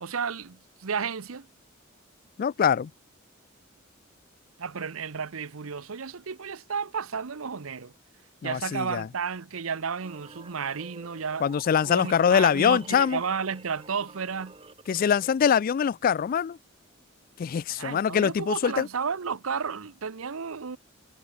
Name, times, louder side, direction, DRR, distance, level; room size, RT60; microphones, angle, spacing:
voice 1, 0.0-1.5 4.6-7.9 8.4-11.5 11.8-14.5 17.7-20.8, right 6 dB, 90° right, 0.8 m, -32 dB
voice 2, 2.4-2.9 8.4-9.1 11.4-13.2 14.9-16.6 17.4-18.9, left 7 dB, 45° left, 0.3 m, -23 dB
sound 1, 10.0-15.3, right 3 dB, 25° right, 1.9 m, -49 dB
head